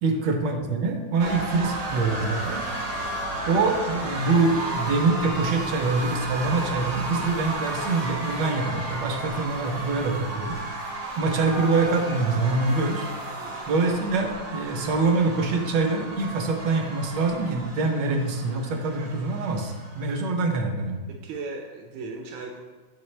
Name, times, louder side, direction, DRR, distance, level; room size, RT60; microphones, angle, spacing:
voice 1, 0.0-2.7 3.5-10.6 11.2-13.1 13.7-21.0, right 3 dB, 70° right, 4 dB, 1.4 m, -25 dB
sound 1, 1.2-20.3, right 2 dB, 50° right, 1.1 m, -33 dB
voice 2, 13.4-13.7 21.1-22.6, right 3 dB, 85° right, 2 dB, 1.4 m, -37 dB
7.9 x 4.4 x 3.2 m, 1.3 s
omnidirectional pair, 2.1 m